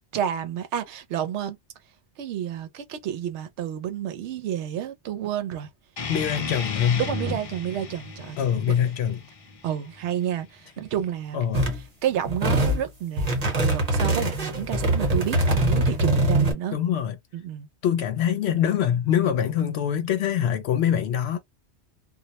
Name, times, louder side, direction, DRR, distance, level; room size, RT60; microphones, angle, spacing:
voice 1, 0.1-1.6 2.2-5.7 7.0-8.8 9.6-11.5 12.0-16.8 17.3-17.7, right 10 dB, 85° right, 0.9 m, -30 dB
sound 1, 6.0-11.0, left 4 dB, 40° left, 0.5 m, -35 dB
voice 2, 6.1-7.0 8.4-9.2 11.3-11.7 16.7-17.2 17.8-21.4, left 9 dB, 75° left, 0.8 m, -24 dB
sound 2, 11.5-11.8 12.2-12.8 13.2-16.5, right 1 dB, 40° right, 0.9 m, -23 dB
2.3 x 2.0 x 2.7 m
omnidirectional pair, 1.1 m